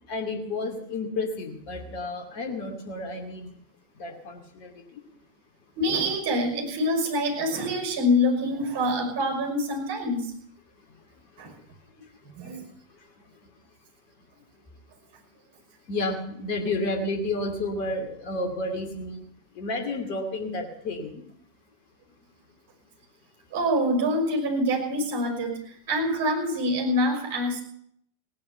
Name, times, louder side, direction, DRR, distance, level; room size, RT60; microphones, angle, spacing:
voice 1, 0.1-3.5 4.0-5.0 15.9-19.2 19.6-21.2, left 2 dB, 45° left, 4 dB, 2.5 m, -31 dB
voice 2, 5.8-10.3 11.4-11.5 12.4-12.6 23.5-27.6, left 1 dB, 50° right, 2 dB, 5.5 m, -25 dB
17.5 x 9.6 x 7.9 m, 0.69 s
figure-of-eight pair, 90°, 0 cm